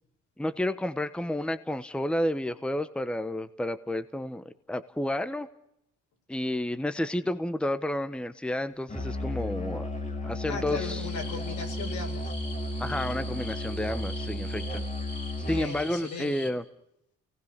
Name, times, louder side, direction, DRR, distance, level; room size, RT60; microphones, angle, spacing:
voice 1, 0.4-5.5 6.3-9.9 10.2-11.1 12.8-14.8 15.5-16.6, left 1 dB, 5° left, 11 dB, 1.1 m, -31 dB
Musical instrument, 8.9-15.8, left 1 dB, 25° left, 3.1 m, -34 dB
voice 2, 10.4-12.3 15.4-16.3, left 5 dB, 75° left, 3 dB, 6.3 m, -37 dB
sound 1, 10.8-16.5, left 2 dB, 50° left, 4.2 m, -44 dB
29.0 x 18.5 x 6.6 m, 0.80 s
cardioid pair, 90°, 30 cm